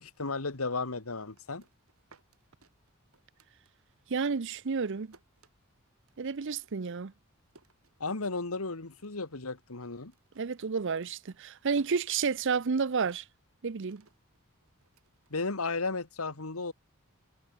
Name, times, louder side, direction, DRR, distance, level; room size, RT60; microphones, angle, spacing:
voice 1, 0.0-1.6 8.0-10.1 15.3-16.7, left 3 dB, 85° left, 1.9 m, -34 dB
sound 1, 1.3-4.1 4.4-8.5 8.8-9.4 9.7-16.0, right 3 dB, 90° right, 5.9 m, -65 dB
voice 2, 4.1-5.1 6.2-7.1 10.4-13.2 13.6-14.0, right 5 dB, 60° right, 0.6 m, -31 dB
head